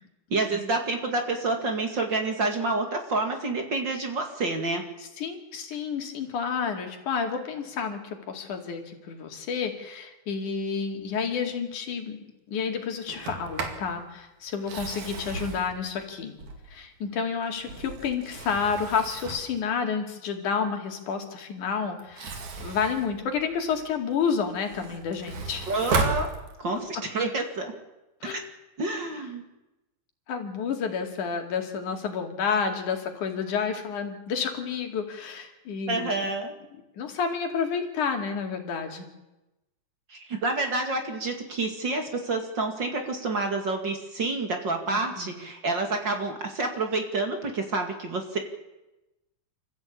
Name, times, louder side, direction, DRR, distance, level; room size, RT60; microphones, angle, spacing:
voice 1, 0.3-4.8 25.7-26.3 26.6-27.7 28.2-28.4 28.8-29.4 35.9-36.5 40.1-48.4, right 3 dB, 40° right, 4 dB, 2.6 m, -28 dB
voice 2, 5.2-8.0 8.3-12.2 12.5-16.4 16.7-25.7 26.8-26.9 28.2-28.4 30.3-36.1 37.0-39.1 44.9-45.3, left 6 dB, 85° left, 4 dB, 3.9 m, -30 dB
Sliding door, 13.1-13.9 14.5-16.9 17.4-19.6 22.0-23.9 24.4-26.9, right 4 dB, 75° right, 3.8 m, -34 dB
26.0 x 15.0 x 8.5 m, 1.0 s
omnidirectional pair, 3.4 m